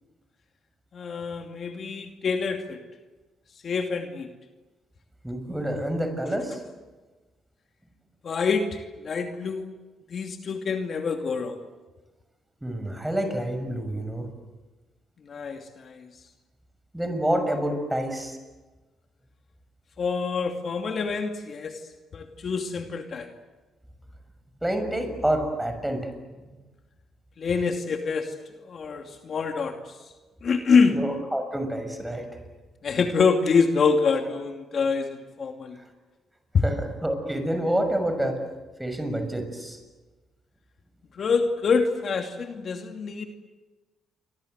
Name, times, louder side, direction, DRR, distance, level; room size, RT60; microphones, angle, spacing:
voice 1, 0.9-2.8 3.6-4.3 8.2-8.7 9.0-9.7 10.1-11.6 15.3-16.1 20.0-21.8 22.1-23.3 27.4-28.3 28.7-29.8 30.4-31.0 32.8-35.8 36.5-36.6 41.2-43.3, left 5 dB, 50° left, 5 dB, 2.5 m, -25 dB
voice 2, 5.2-6.6 12.6-14.3 16.9-18.4 24.6-26.1 30.9-32.2 36.6-38.4 38.8-39.8, right 1 dB, 5° right, 7 dB, 6.6 m, -28 dB
29.0 x 25.0 x 8.1 m, 1.2 s
cardioid pair, 90°, 0 cm